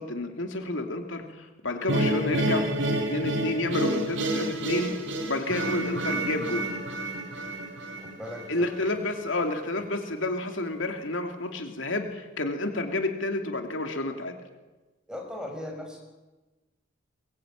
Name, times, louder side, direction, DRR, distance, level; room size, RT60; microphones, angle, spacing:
voice 1, 0.0-2.7 3.0-4.9 5.3-6.7 8.5-14.4, left 2 dB, 75° left, 4 dB, 2.8 m, -30 dB
sound 1, 1.9-9.0, right 1 dB, 70° right, 4.6 m, -29 dB
voice 2, 8.0-8.5 9.3-9.4 15.1-16.0, left 1 dB, 5° right, 1 dB, 6.1 m, -38 dB
23.0 x 23.0 x 9.0 m, 1.2 s
head